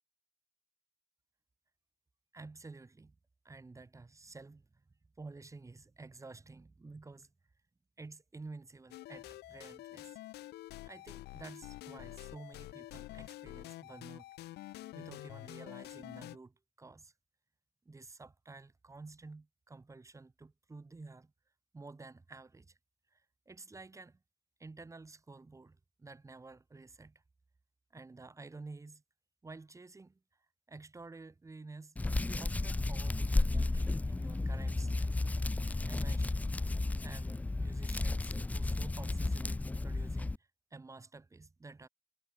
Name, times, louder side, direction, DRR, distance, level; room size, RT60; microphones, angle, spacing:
voice 1, 2.3-3.2 3.4-4.8 5.2-7.3 8.0-10.2 10.9-14.3 14.6-17.1 17.9-21.3 21.7-22.8 23.1-24.2 24.6-27.2 27.9-29.0 29.4-30.2 30.7-32.0 32.2-35.1 35.4-36.5 37.0-41.9, right 3 dB, 20° right, 3.6 m, -51 dB
sound 1, 8.9-16.4, left 16 dB, 80° left, 2.1 m, -48 dB
Hands, 32.0-40.4, left 2 dB, 10° left, 0.4 m, -33 dB
cardioid pair, 110°, 17 cm